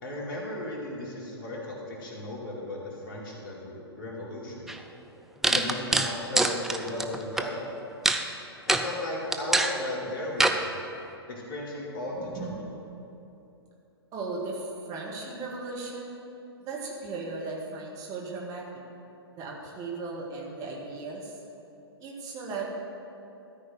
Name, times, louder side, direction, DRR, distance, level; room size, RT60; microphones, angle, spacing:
voice 1, 0.0-4.7 5.4-7.7 8.7-10.7 11.3-12.6, left 1 dB, 50° left, -3 dB, 2.5 m, -36 dB
sound 1, 4.7-4.8 5.4-7.4 8.0-8.2 8.7-8.9 9.3-9.8 10.4-10.6, right 2 dB, ahead, 0.4 m, -24 dB
voice 2, 12.2-12.7 14.1-16.2 16.6-18.7 19.3-21.4 22.0-22.7, right 3 dB, 25° right, -2 dB, 1.7 m, -37 dB
13.5 x 5.1 x 7.9 m, 2.8 s
figure-of-eight pair, 115°, 14 cm